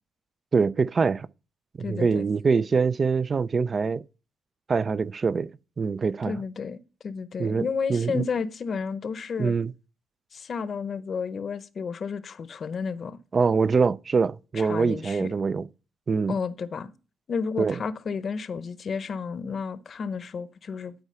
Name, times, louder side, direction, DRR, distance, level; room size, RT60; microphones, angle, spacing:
voice 1, 0.5-1.3 1.8-4.0 4.7-5.5 5.8-6.4 7.4-8.2 9.4-9.7 13.3-15.7 16.1-16.3 17.6-17.8, right 5 dB, 40° right, 0.4 m, -24 dB
voice 2, 1.8-2.2 6.2-6.8 7.0-9.6 10.3-13.2 14.6-15.3 16.3-16.9 17.3-20.9, left 5 dB, 50° left, 0.7 m, -32 dB
11.5 x 4.7 x 5.6 m
cardioid pair, 90°, 0 cm